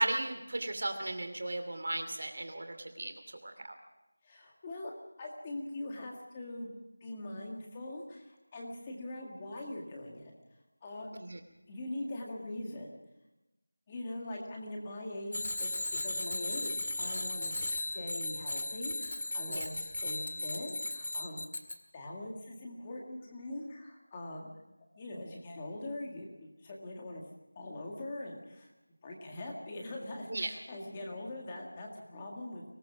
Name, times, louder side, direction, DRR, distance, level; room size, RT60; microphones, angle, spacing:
voice 1, 0.0-3.1 3.4-3.5 11.1-11.4 19.5-19.6 30.3-30.5, right 2 dB, 40° right, 6 dB, 2.7 m, -35 dB
voice 2, 4.2-4.9 5.2-6.7 7.0-10.3 10.8-11.1 11.7-13.0 13.9-21.5 21.9-24.5 25.0-27.2 27.6-28.7 29.0-32.6, left 1 dB, 10° left, 0 dB, 1.7 m, -42 dB
Bicycle bell, 15.3-21.8, left 2 dB, 40° left, 1.9 m, -36 dB
24.5 x 18.5 x 6.1 m, 0.98 s
figure-of-eight pair, 180°, 0 cm